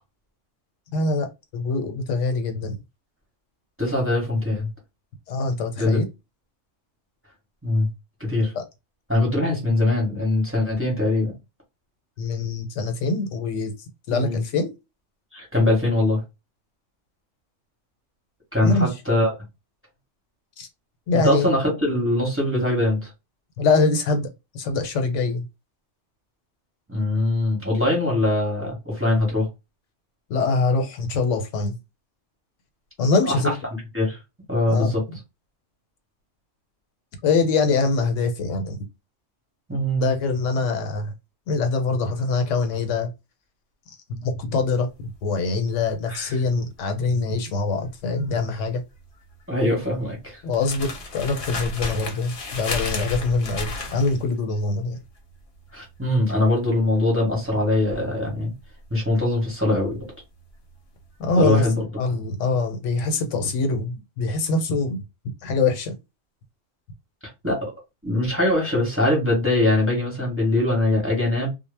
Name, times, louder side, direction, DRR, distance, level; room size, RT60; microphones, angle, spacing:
voice 1, 0.9-2.8 5.3-6.1 8.5-8.6 12.2-13.7 14.1-14.7 18.6-18.9 20.6-20.7 21.1-21.5 23.6-24.3 24.5-25.5 30.3-31.7 33.0-33.5 34.7-34.9 37.2-38.8 40.0-41.1 41.5-43.1 44.1-44.9 45.2-48.8 50.4-55.0 61.2-61.7 62.0-65.0 65.4-65.9, left 3 dB, 85° left, 1.0 m, -24 dB
voice 2, 3.8-4.7 5.8-6.0 7.6-7.9 8.2-8.5 9.1-11.3 14.1-14.4 15.3-16.2 18.5-19.3 21.1-23.1 26.9-29.5 33.3-34.2 34.5-35.0 39.7-40.1 46.1-46.3 49.5-50.4 55.7-58.5 58.9-60.0 61.4-61.8 67.4-67.7 68.0-71.5, left 1 dB, 15° right, 0.8 m, -22 dB
sound 1, 44.5-60.7 61.0-61.4, left 3 dB, 55° left, 0.7 m, -34 dB
2.1 x 2.0 x 3.2 m
omnidirectional pair, 1.2 m